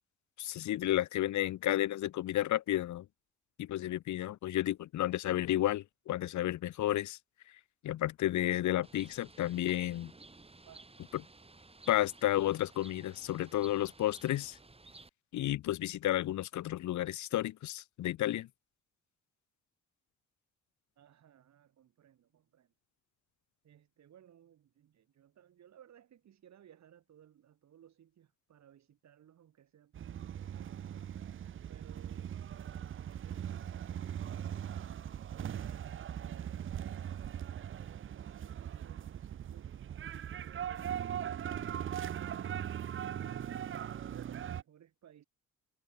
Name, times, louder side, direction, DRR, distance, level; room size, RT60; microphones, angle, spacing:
voice 1, 0.4-3.1 3.6-7.2 7.8-10.1 11.9-14.6 15.3-18.5, left 13 dB, 70° left, 1.0 m, -32 dB
Bird, 8.8-15.1, right 3 dB, 20° right, 7.9 m, -56 dB
voice 2, 10.6-11.1 21.0-22.7 23.6-31.0 31.7-32.7 33.0-34.2 34.6-35.0 35.2-39.9 40.7-43.5 43.9-45.3, right 10 dB, 65° right, 4.4 m, -61 dB
sound 1, 29.9-44.6, right 9 dB, 40° right, 0.7 m, -40 dB
cardioid pair, 90°, 30 cm